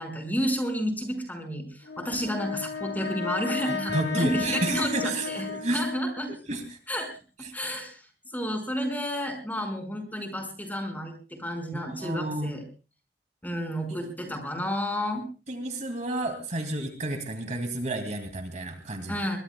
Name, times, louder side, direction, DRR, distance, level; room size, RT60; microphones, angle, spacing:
voice 1, 0.0-6.3 6.9-7.1 7.5-8.0 8.3-12.6 13.4-15.2 19.1-19.4, equal, 10° left, 4 dB, 5.3 m, -31 dB
Brass instrument, 1.9-6.3, left 5 dB, 75° left, 2.4 m, -34 dB
voice 2, 3.9-5.8 6.5-6.8 7.4-7.5 11.7-12.5 13.9-14.0 15.5-19.2, right 1 dB, 45° right, 5 dB, 2.4 m, -31 dB
23.0 x 23.0 x 2.3 m, 0.34 s
head